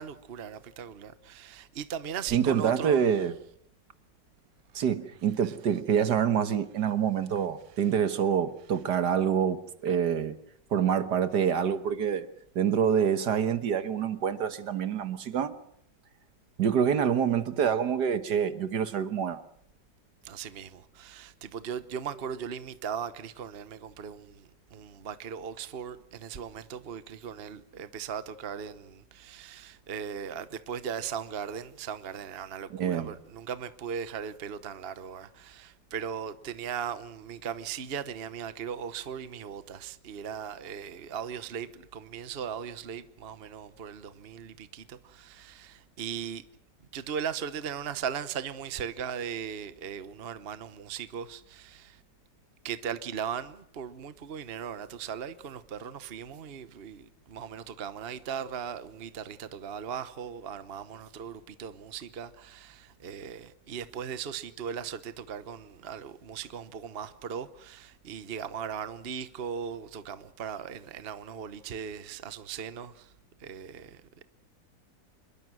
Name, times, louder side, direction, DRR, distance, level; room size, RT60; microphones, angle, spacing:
voice 1, 0.0-3.0 5.4-5.5 20.2-46.4 46.9-52.0 52.6-73.1 73.4-74.0, right 7 dB, 40° right, 1.1 m, -38 dB
voice 2, 2.3-3.3 4.7-10.4 10.7-12.3 12.6-15.5 16.6-19.4 32.7-33.1, right 8 dB, 65° right, 1.8 m, -26 dB
26.5 x 22.0 x 6.3 m
omnidirectional pair, 2.0 m